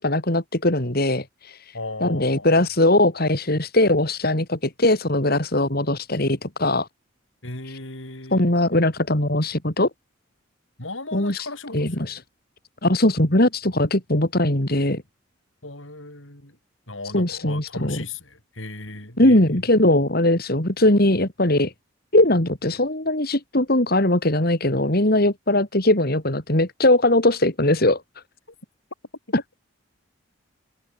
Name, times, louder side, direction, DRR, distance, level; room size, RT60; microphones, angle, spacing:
voice 1, 0.0-1.7 2.0-6.9 7.7-7.8 8.3-9.9 11.1-11.5 11.7-12.2 12.8-15.0 17.1-18.0 19.2-21.7 22.1-28.0, left 1 dB, 50° left, 3.2 m, -20 dB
voice 2, 1.7-2.7 7.4-8.8 10.8-12.2 15.6-16.6 16.9-19.6, left 2 dB, 75° left, 7.0 m, -36 dB
open air
head